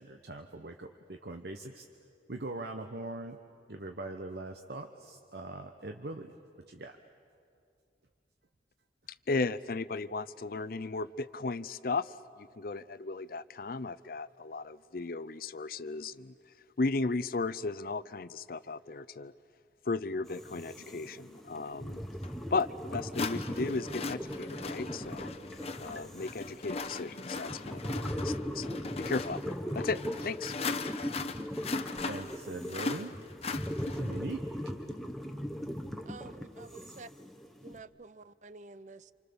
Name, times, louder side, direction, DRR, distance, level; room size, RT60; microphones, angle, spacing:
voice 1, 0.0-1.9 2.3-3.4 3.7-6.3 6.7-7.0 32.1-33.2 33.8-34.4, right 2 dB, 65° right, 5 dB, 1.0 m, -41 dB
voice 2, 9.3-16.3 16.8-19.3 19.9-22.0 22.5-25.3 25.8-30.5, left 3 dB, 55° left, 16 dB, 0.5 m, -35 dB
sound 1, 20.3-37.8, equal, ahead, 1.1 m, -39 dB
sound 2, 22.2-22.3 23.1-34.2, left 4 dB, 35° left, 0.9 m, -39 dB
voice 3, 36.1-37.1 37.6-39.1, right 3 dB, 40° right, 16 dB, 0.6 m, -50 dB
29.0 x 26.5 x 7.0 m, 2.4 s
head